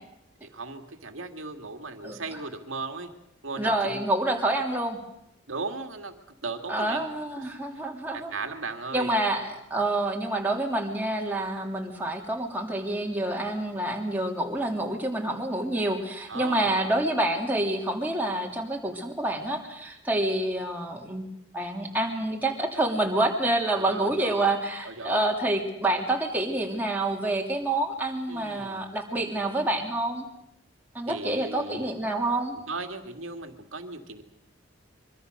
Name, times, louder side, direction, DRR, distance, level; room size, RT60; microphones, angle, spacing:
voice 1, 0.4-3.1 3.4-4.0 5.5-7.1 7.7-7.9 8.1-9.1 16.3-17.0 23.8-24.4 24.8-25.2 28.3-28.9 31.1-31.9 32.5-34.2, right 3 dB, 75° right, 5 dB, 2.3 m, -37 dB
voice 2, 3.6-5.0 6.7-8.3 8.9-21.3 21.5-30.2 30.9-32.5, right 1 dB, 10° right, 0 dB, 3.0 m, -27 dB
24.5 x 24.0 x 6.7 m, 0.78 s
head